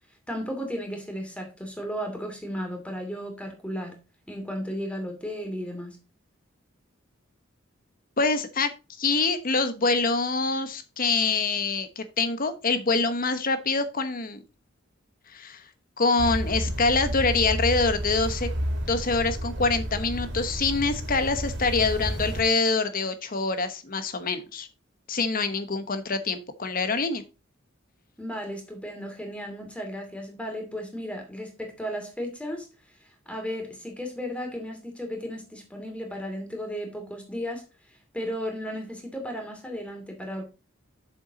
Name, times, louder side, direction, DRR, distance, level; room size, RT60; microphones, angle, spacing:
voice 1, 0.3-4.0 4.3-6.0 28.2-32.7 33.3-37.6 38.1-40.4, equal, 5° left, 2.5 m, -34 dB
voice 2, 8.2-8.7 9.0-14.4 15.3-15.6 16.0-18.5 18.9-24.7 25.1-27.2, left 3 dB, 45° left, 1.1 m, -25 dB
sound 1, 16.2-22.4, equal, 65° right, 2.5 m, -31 dB
7.1 x 7.0 x 4.0 m
head